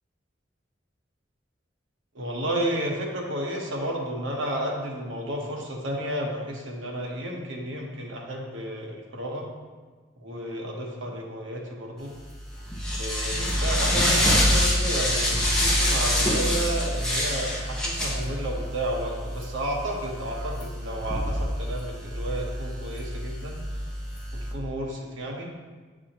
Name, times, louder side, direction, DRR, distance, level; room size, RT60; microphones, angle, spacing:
voice 1, 2.1-9.5 10.2-12.1 12.9-23.6 24.5-25.5, right 1 dB, 90° right, -1 dB, 1.1 m, -32 dB
sound 1, 12.1-24.5, equal, 5° left, 0.9 m, -26 dB
7.8 x 4.8 x 2.9 m, 1.4 s
head